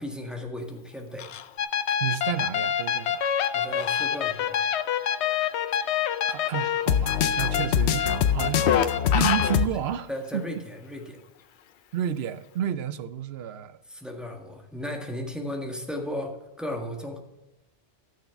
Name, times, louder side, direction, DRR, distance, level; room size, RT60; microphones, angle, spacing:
voice 1, 0.0-1.3 3.5-4.6 10.1-11.2 13.9-17.2, left 1 dB, ahead, 1.6 m, -35 dB
Fowl, 0.6-12.6, left 9 dB, 60° left, 0.6 m, -41 dB
sound 1, 1.6-9.7, left 9 dB, 80° left, 0.9 m, -24 dB
voice 2, 2.0-3.3 6.3-8.8 9.1-10.5 11.9-13.8, right 10 dB, 70° right, 0.9 m, -31 dB
13.5 x 6.5 x 5.8 m
omnidirectional pair, 1.1 m